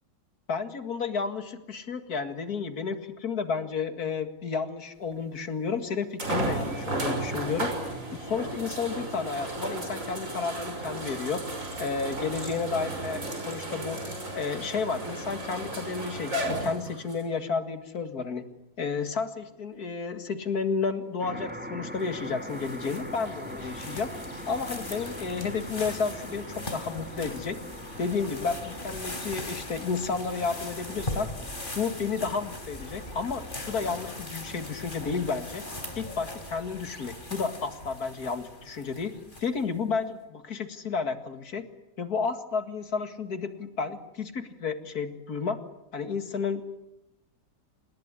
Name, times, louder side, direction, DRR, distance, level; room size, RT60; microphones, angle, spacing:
voice 1, 0.5-7.7 8.1-11.4 11.8-14.1 14.3-18.4 18.8-24.1 24.5-27.6 28.0-31.3 31.8-35.6 36.0-39.1 39.4-41.7 42.0-45.6 45.9-46.6, left 5 dB, 65° left, 9 dB, 2.4 m, -31 dB
sound 1, 5.1-5.2 6.2-17.2 18.0-18.1 21.5-21.6, right 2 dB, 50° right, 6.1 m, -34 dB
sound 2, 21.2-35.9, right 1 dB, 5° right, 2.1 m, -44 dB
sound 3, 22.0-39.8, left 1 dB, 30° left, 3.7 m, -40 dB
27.5 x 20.0 x 10.0 m, 0.90 s
omnidirectional pair, 1.8 m